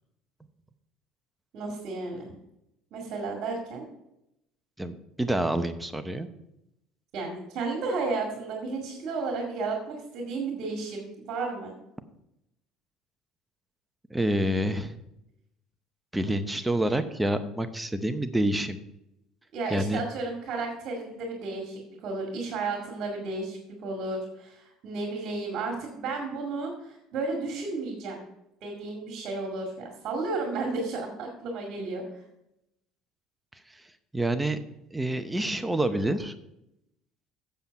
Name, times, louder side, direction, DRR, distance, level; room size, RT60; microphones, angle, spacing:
voice 1, 1.5-2.3 2.9-3.8 7.1-11.7 19.5-28.2 28.6-32.2, right 3 dB, 55° right, 1 dB, 2.1 m, -33 dB
voice 2, 4.8-6.3 14.1-15.0 16.1-18.8 19.7-20.0 33.7-33.8 34.1-34.6 34.9-36.3, right 1 dB, 5° right, 9 dB, 0.7 m, -27 dB
8.0 x 7.2 x 5.3 m, 0.85 s
cardioid pair, 120°, 0 cm